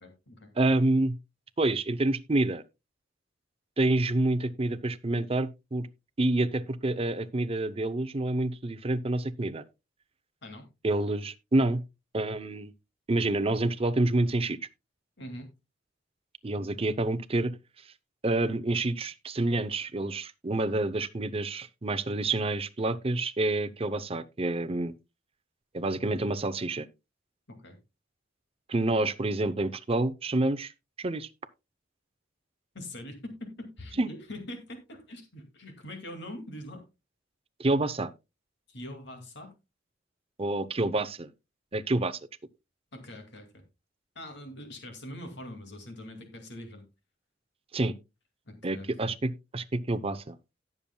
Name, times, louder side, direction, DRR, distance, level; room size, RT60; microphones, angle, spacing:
voice 1, 0.0-0.5 10.4-10.7 15.2-15.5 27.5-27.8 32.7-36.8 38.7-39.5 42.9-43.6 44.2-46.9 48.5-49.1, left 1 dB, 65° left, 2.3 m, -43 dB
voice 2, 0.6-1.1 1.6-2.6 3.8-5.9 6.2-9.6 10.8-11.8 12.1-12.7 13.1-14.6 16.4-17.5 18.2-24.9 25.7-26.9 28.7-30.7 31.0-31.3 34.0-34.1 37.6-38.1 40.4-41.3 41.7-42.2 47.7-47.9 48.6-50.3, right 2 dB, 30° right, 0.7 m, -28 dB
17.5 x 7.0 x 2.3 m
head